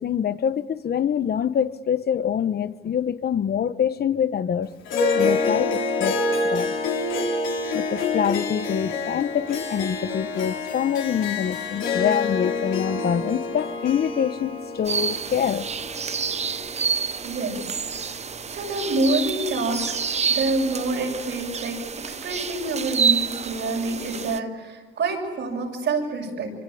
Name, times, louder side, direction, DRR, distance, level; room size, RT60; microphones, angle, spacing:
voice 1, 0.0-4.7 5.1-6.7 7.7-15.7, left 8 dB, 50° left, 1.1 m, -25 dB
Harp, 4.9-17.4, left 3 dB, 80° left, 3.6 m, -27 dB
sound 1, 14.9-24.4, right 6 dB, 35° right, 0.9 m, -28 dB
voice 2, 17.2-17.6 18.0-18.2 18.5-19.9 20.3-26.5, right 2 dB, 70° right, 7.3 m, -27 dB
25.5 x 25.5 x 8.7 m
cardioid pair, 90°, 20 cm